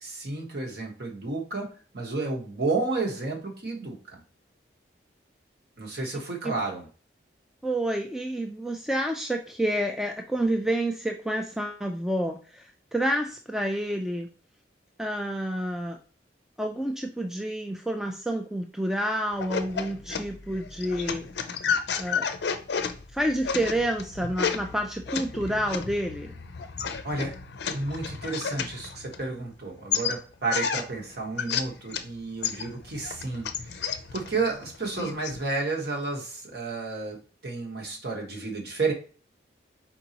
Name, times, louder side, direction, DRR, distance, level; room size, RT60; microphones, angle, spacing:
voice 1, 0.0-4.2 5.8-6.9 27.0-27.3 27.7-38.9, right 3 dB, 55° right, -1 dB, 1.3 m, -31 dB
voice 2, 7.6-12.6 12.9-14.3 15.0-16.0 16.6-21.2 22.0-22.3 23.1-26.3, right 1 dB, 5° right, 3 dB, 0.3 m, -29 dB
sound 1, 19.3-29.5 29.9-32.1 32.4-35.4, left 6 dB, 60° left, 0.5 m, -32 dB
4.5 x 3.9 x 2.8 m, 0.38 s
head